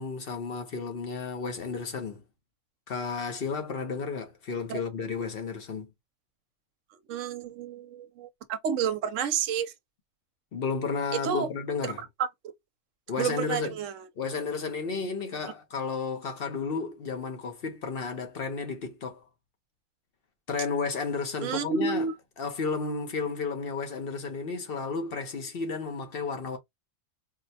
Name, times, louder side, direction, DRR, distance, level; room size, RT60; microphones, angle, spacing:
voice 1, 0.0-2.2 2.9-5.9 10.5-12.0 13.1-13.8 14.2-19.3 20.5-22.1 22.4-26.6, left 4 dB, 55° left, 0.9 m, -32 dB
voice 2, 7.1-9.7 11.2-11.5 12.2-12.3 13.2-14.0 21.4-22.1, right 7 dB, 80° right, 0.9 m, -30 dB
4.1 x 2.1 x 2.7 m
omnidirectional pair, 1.3 m